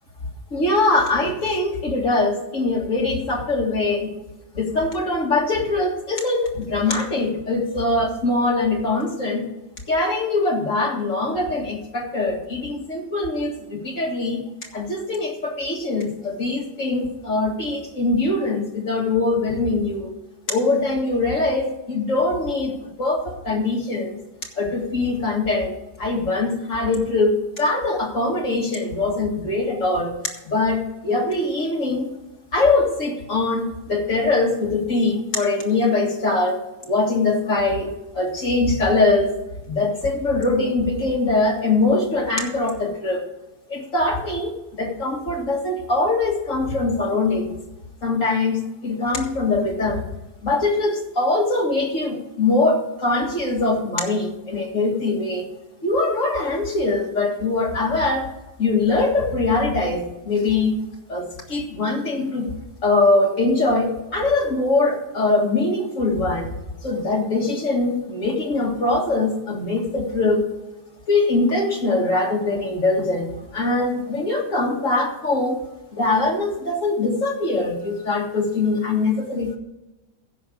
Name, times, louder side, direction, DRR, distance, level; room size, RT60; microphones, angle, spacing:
voice 1, 0.5-4.1 4.5-9.5 9.9-14.4 14.7-20.1 20.5-24.2 24.6-25.7 26.0-30.2 30.5-32.1 32.5-36.6 36.8-39.4 39.7-43.3 43.7-47.5 48.0-50.0 50.4-55.5 55.8-58.3 58.6-62.5 62.8-66.5 66.8-70.5 71.1-75.6 75.9-79.6, left 2 dB, 55° left, 0 dB, 2.3 m, -22 dB
15.0 x 5.2 x 6.3 m, 1.0 s
omnidirectional pair, 1.6 m